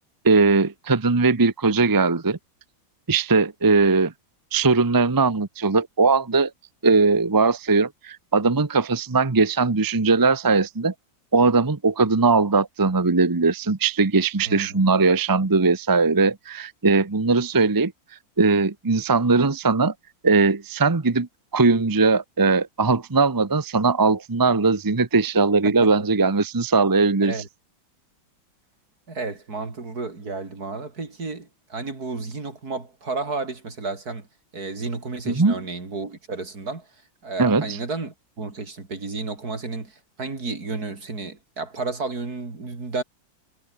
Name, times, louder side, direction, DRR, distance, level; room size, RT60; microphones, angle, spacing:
voice 1, 0.2-2.4 3.1-4.1 4.5-6.5 6.8-10.9 11.3-17.9 18.4-19.9 20.2-21.3 21.5-27.3 35.3-35.6 37.4-37.6, right 4 dB, 30° right, 0.4 m, -20 dB
voice 2, 14.5-14.8 25.6-25.7 27.2-27.5 29.1-34.3 34.5-36.9 37.2-43.0, right 3 dB, 50° right, 4.2 m, -32 dB
omnidirectional pair, 2.2 m